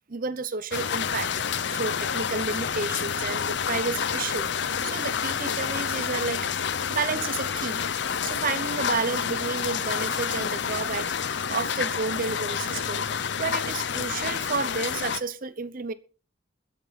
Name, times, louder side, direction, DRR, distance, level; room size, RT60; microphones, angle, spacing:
voice 1, 0.0-7.9 8.2-15.9, right 4 dB, 45° right, 0.8 m, -31 dB
sound 1, 0.7-15.2, left 7 dB, 65° left, 0.6 m, -29 dB
21.0 x 7.9 x 4.1 m
head